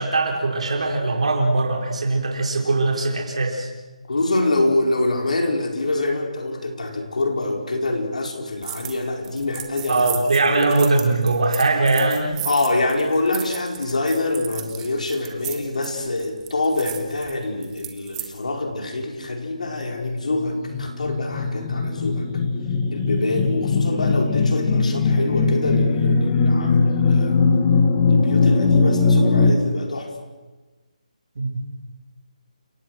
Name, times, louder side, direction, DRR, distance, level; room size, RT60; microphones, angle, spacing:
voice 1, 0.0-3.7 9.9-12.5 31.4-31.6, right 2 dB, 55° right, 1 dB, 4.4 m, -21 dB
voice 2, 4.1-10.1 12.4-22.3 22.9-27.4 28.1-30.1, left 2 dB, 70° left, 2 dB, 4.8 m, -25 dB
sound 1, 8.6-9.0 9.2-18.3, right 12 dB, 10° right, 1.1 m, -35 dB
sound 2, 19.7-29.5, left 4 dB, 15° left, 1.3 m, -20 dB
29.5 x 17.5 x 6.3 m, 1.2 s
hypercardioid pair, 170°, 4 cm